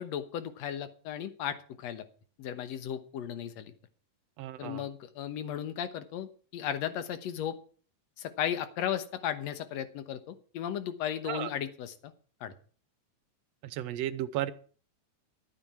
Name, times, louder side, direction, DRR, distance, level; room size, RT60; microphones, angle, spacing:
voice 1, 0.0-2.0 2.4-3.7 4.6-7.6 8.2-12.1 12.4-12.5, left 9 dB, 65° left, 11 dB, 2.1 m, -35 dB
voice 2, 4.4-4.9 11.3-11.5 13.6-14.5, right 12 dB, 70° right, 13 dB, 1.7 m, -34 dB
12.0 x 9.1 x 6.1 m, 0.42 s
omnidirectional pair, 3.5 m